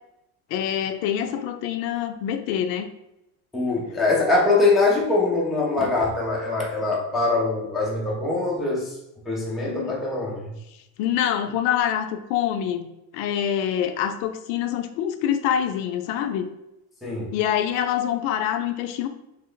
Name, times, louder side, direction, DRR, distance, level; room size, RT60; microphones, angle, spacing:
voice 1, 0.5-2.9 9.7-10.0 11.0-16.5 17.3-19.1, left 10 dB, 65° left, 8 dB, 0.5 m, -25 dB
voice 2, 3.5-9.0 9.3-10.6 17.0-17.4, left 3 dB, ahead, -4 dB, 0.4 m, -23 dB
3.3 x 3.0 x 3.8 m, 0.89 s
cardioid pair, 170°, 38 cm